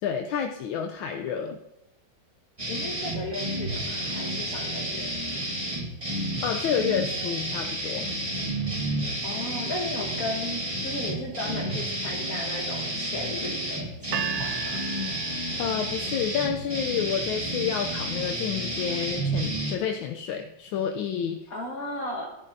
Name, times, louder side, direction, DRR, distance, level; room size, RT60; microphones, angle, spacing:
voice 1, 0.0-1.6 6.4-8.1 15.6-21.4, left 8 dB, 80° left, 4 dB, 1.4 m, -29 dB
sound 1, 2.6-19.8, right 1 dB, 20° right, 1.3 m, -31 dB
voice 2, 2.7-5.1 9.2-14.8 21.5-22.4, left 2 dB, 50° left, 0 dB, 1.4 m, -35 dB
sound 2, 14.1-16.2, right 11 dB, 90° right, 1.4 m, -35 dB
14.5 x 10.5 x 2.6 m, 0.91 s
omnidirectional pair, 2.2 m